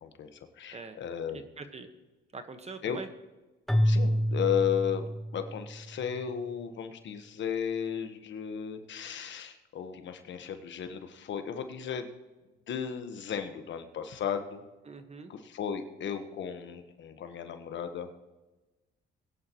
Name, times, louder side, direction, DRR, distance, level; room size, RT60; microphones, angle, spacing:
voice 1, 0.0-1.4 2.8-3.0 3.8-12.1 12.7-14.6 15.3-18.1, left 8 dB, 65° left, 8 dB, 1.3 m, -34 dB
voice 2, 1.3-1.9 2.3-3.1 14.9-15.3, right 4 dB, 30° right, 8 dB, 1.4 m, -43 dB
Keyboard (musical), 3.7-5.9, equal, ahead, 0.7 m, -28 dB
20.0 x 10.5 x 3.1 m, 1.1 s
cardioid pair, 90°, 20 cm